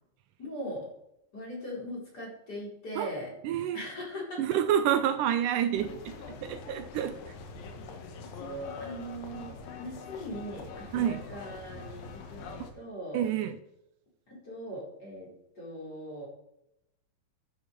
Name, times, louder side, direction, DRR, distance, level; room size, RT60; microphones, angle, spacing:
voice 1, 0.4-0.9 1.3-3.3 3.7-4.4 8.3-13.3 14.3-16.3, equal, 30° left, -5 dB, 4.7 m, -40 dB
voice 2, 3.4-3.8 4.4-6.2 6.4-7.4 10.9-11.2 13.1-13.6, right 10 dB, 80° right, 9 dB, 2.2 m, -28 dB
sound 1, 5.8-12.7, left 4 dB, 90° left, 3.1 m, -44 dB
10.5 x 8.2 x 5.3 m, 0.85 s
omnidirectional pair, 3.9 m